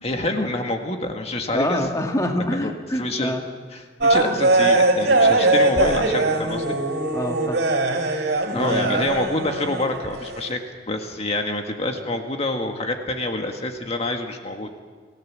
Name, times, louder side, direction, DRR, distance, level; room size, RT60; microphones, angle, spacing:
voice 1, 0.0-1.9 2.5-2.7 3.0-3.3 3.7-6.8 8.5-10.6 10.9-14.7, left 2 dB, 35° left, 4 dB, 1.8 m, -27 dB
voice 2, 1.5-3.4 7.1-7.6 8.5-9.1, left 1 dB, 20° left, 2 dB, 1.8 m, -26 dB
sound 1, 4.0-10.5, right 2 dB, 70° right, 3.5 m, -21 dB
29.0 x 17.0 x 7.5 m, 1.5 s
head